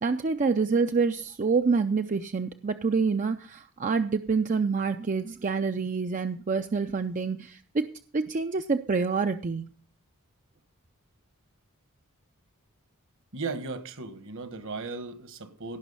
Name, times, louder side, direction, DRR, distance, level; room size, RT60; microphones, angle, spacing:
voice 1, 0.0-9.7, right 4 dB, 35° right, 0.5 m, -27 dB
voice 2, 13.3-15.8, right 3 dB, 60° right, 1.4 m, -36 dB
17.0 x 6.0 x 5.5 m
head